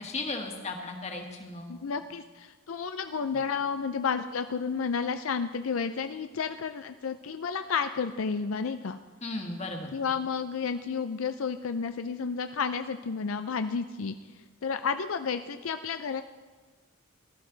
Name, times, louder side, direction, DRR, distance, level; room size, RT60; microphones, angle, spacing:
voice 1, 0.0-1.8 9.2-9.9, left 2 dB, 30° left, 2 dB, 1.7 m, -36 dB
voice 2, 1.7-9.0 9.9-14.2 14.6-16.2, left 5 dB, 80° left, 9 dB, 0.5 m, -31 dB
18.5 x 12.5 x 3.9 m, 1.4 s
head